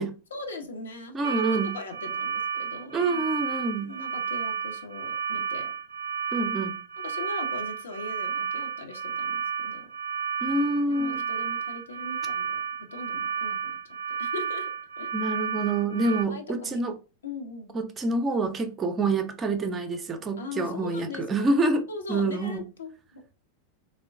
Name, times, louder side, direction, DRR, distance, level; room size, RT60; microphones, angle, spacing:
voice 1, 0.3-3.2 3.8-5.7 7.0-9.9 10.5-12.6 12.9-13.8 14.2-14.7 15.0-15.1 15.8-16.8 17.2-17.7 20.4-21.6 21.9-23.3, left 3 dB, 70° left, 0.7 m, -40 dB
voice 2, 1.1-1.8 2.9-3.9 6.3-6.8 10.4-11.2 15.1-17.0 17.7-22.6, right 2 dB, 20° right, 0.5 m, -27 dB
sound 1, 1.2-16.3, right 7 dB, 75° right, 0.3 m, -32 dB
3.6 x 2.1 x 3.6 m
figure-of-eight pair, 90°, 0 cm